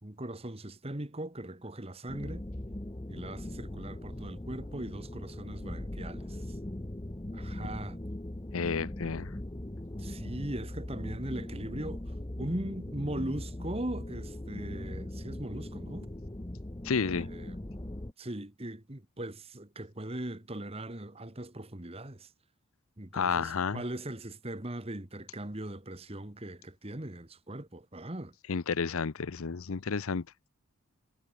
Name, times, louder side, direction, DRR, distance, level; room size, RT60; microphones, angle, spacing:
voice 1, 0.0-2.5 3.1-6.4 7.3-8.0 10.0-12.0 12.4-16.1 17.0-17.6 18.2-22.3 23.0-28.3, right 1 dB, 25° right, 1.5 m, -39 dB
sound 1, 2.1-18.1, left 1 dB, 20° left, 0.8 m, -40 dB
voice 2, 8.5-9.3 16.8-17.3 23.1-23.8 28.5-30.3, left 5 dB, 70° left, 0.6 m, -31 dB
head